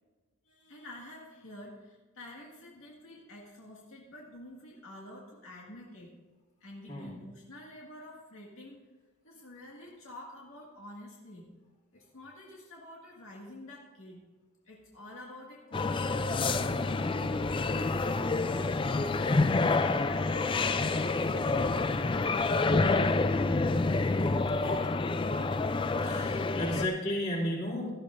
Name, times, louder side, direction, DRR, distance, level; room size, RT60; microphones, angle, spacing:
voice 1, 0.5-6.1 6.6-8.8 9.2-11.5 11.9-14.2 14.6-17.5 18.3-21.8, left 1 dB, 75° left, -3 dB, 1.9 m, -48 dB
sound 1, 15.7-26.9, left 3 dB, 25° left, 0.3 m, -28 dB
voice 2, 24.5-24.9 26.0-27.9, left 1 dB, 40° left, -4 dB, 3.2 m, -33 dB
17.0 x 12.0 x 2.6 m, 1.2 s
head